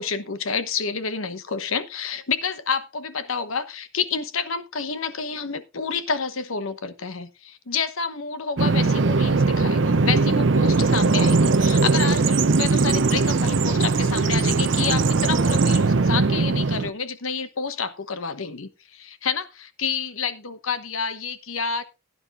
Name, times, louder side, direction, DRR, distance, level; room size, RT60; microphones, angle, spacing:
voice 1, 0.0-21.8, left 5 dB, 85° left, 1.1 m, -29 dB
Bird vocalization bird call bird song, 8.6-16.9, right 3 dB, 60° right, 0.6 m, -20 dB
16.0 x 9.9 x 2.5 m
head